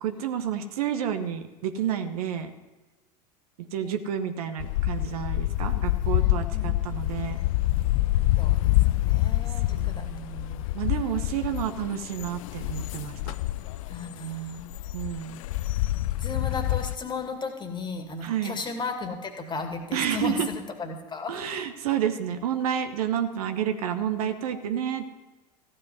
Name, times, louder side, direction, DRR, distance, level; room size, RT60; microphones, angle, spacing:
voice 1, 0.0-2.5 3.7-7.4 9.7-13.3 14.9-15.4 18.2-18.6 19.9-20.5 21.3-25.1, right 9 dB, 60° right, 8 dB, 1.1 m, -30 dB
sound 1, 4.6-17.0, left 16 dB, 55° left, 0.4 m, -27 dB
voice 2, 6.2-6.7 8.4-8.7 9.0-10.1 13.9-14.7 16.2-21.4, left 4 dB, 20° left, 4 dB, 2.1 m, -35 dB
15.0 x 5.5 x 9.5 m, 1.2 s
figure-of-eight pair, 80°, 21 cm